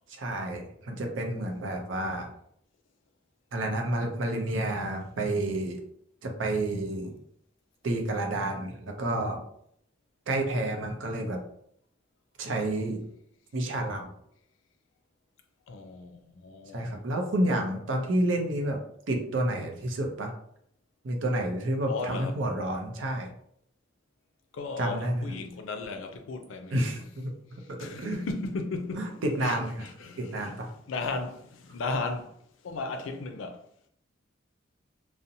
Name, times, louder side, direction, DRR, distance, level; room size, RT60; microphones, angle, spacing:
voice 1, 0.1-2.3 3.5-5.8 6.2-7.1 7.8-9.4 10.3-11.4 12.4-13.0 13.5-14.1 16.7-18.8 19.1-20.3 21.0-23.3 24.8-25.4 26.7-27.3 27.7-28.2 28.9-29.9 30.2-30.7, right 1 dB, 75° right, 0.5 m, -30 dB
voice 2, 15.7-16.9 21.9-22.3 24.5-26.7 27.8-30.5 30.9-32.3 32.6-33.6, left 3 dB, 85° left, 0.4 m, -35 dB
2.7 x 2.0 x 2.6 m
head